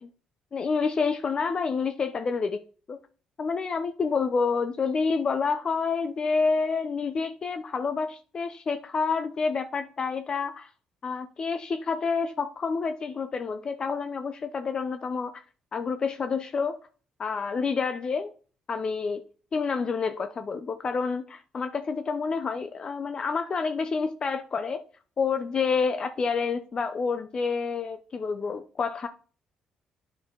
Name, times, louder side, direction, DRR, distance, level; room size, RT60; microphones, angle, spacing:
voice 1, 0.5-2.6 2.9-3.0 3.4-10.7 11.0-15.3 15.7-16.8 17.2-18.3 18.7-19.2 19.5-24.8 25.2-29.1, left 5 dB, 45° left, 0.7 m, -28 dB
9.3 x 4.9 x 3.8 m
supercardioid pair, 75°, 2 cm